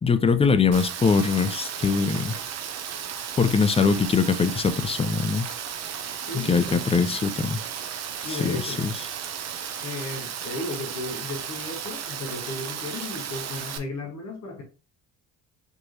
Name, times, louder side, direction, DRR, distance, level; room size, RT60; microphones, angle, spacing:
voice 1, 0.0-2.4 3.4-5.5 6.3-7.6 8.3-8.9, left 5 dB, 20° left, 0.4 m, -22 dB
Rain, 0.7-13.8, right 8 dB, 50° right, 0.7 m, -34 dB
voice 2, 6.3-7.1 8.2-8.8 9.8-14.6, left 3 dB, 55° left, 1.2 m, -35 dB
4.4 x 3.0 x 2.7 m
supercardioid pair, 75°, 34 cm